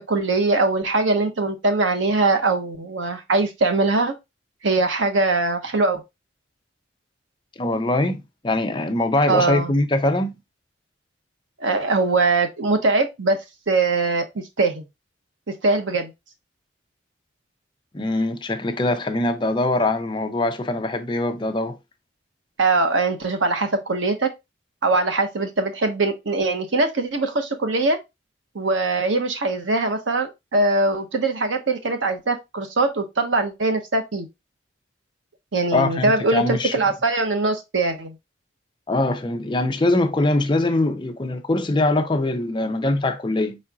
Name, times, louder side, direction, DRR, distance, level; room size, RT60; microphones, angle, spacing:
voice 1, 0.1-4.1 4.6-6.0 9.3-9.7 11.6-13.4 13.7-14.8 15.6-16.1 22.6-24.3 24.8-28.0 28.5-34.3 35.5-38.1, right 3 dB, 85° right, 0.9 m, -22 dB
voice 2, 7.6-10.3 17.9-21.8 35.7-36.7 38.9-43.6, left 2 dB, 25° left, 0.5 m, -22 dB
4.6 x 4.2 x 2.3 m
head